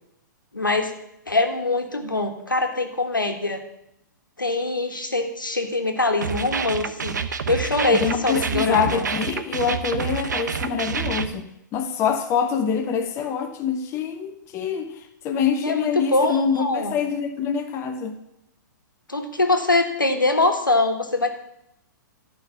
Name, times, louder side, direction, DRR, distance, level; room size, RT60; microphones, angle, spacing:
voice 1, 0.5-0.9 1.3-3.6 4.4-9.0 15.6-17.0 19.1-21.3, left 2 dB, 80° left, 4 dB, 1.6 m, -23 dB
sound 1, 6.2-11.3, right 6 dB, 65° right, 0.8 m, -28 dB
voice 2, 7.9-18.1, left 6 dB, 25° left, 4 dB, 1.1 m, -25 dB
12.0 x 5.6 x 7.3 m, 0.81 s
figure-of-eight pair, 110°, 11 cm